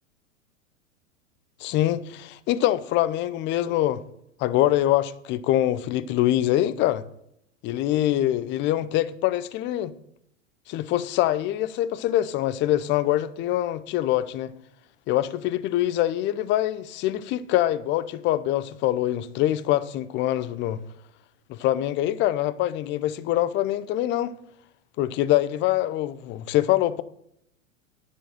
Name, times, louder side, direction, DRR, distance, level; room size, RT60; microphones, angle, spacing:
voice 1, 1.6-4.0 4.4-7.0 7.6-9.9 10.7-14.5 15.1-20.8 21.5-24.3 25.0-27.0, left 13 dB, 30° left, 0.6 m, -24 dB
10.0 x 6.5 x 7.5 m
hypercardioid pair, 100°, 39 cm